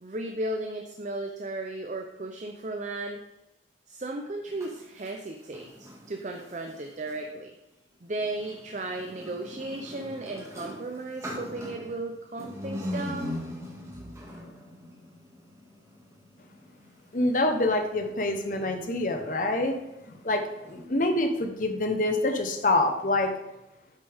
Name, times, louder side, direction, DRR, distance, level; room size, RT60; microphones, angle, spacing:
voice 1, 0.0-3.2 3.9-7.5 8.0-13.3, right 2 dB, 40° right, 4 dB, 0.6 m, -35 dB
sound 1, 4.5-7.3 8.1-20.9, left 1 dB, 15° right, 1.7 m, -42 dB
voice 2, 17.1-19.7 20.1-23.3, left 2 dB, 45° left, 4 dB, 1.0 m, -26 dB
8.3 x 6.9 x 3.5 m, 0.95 s
head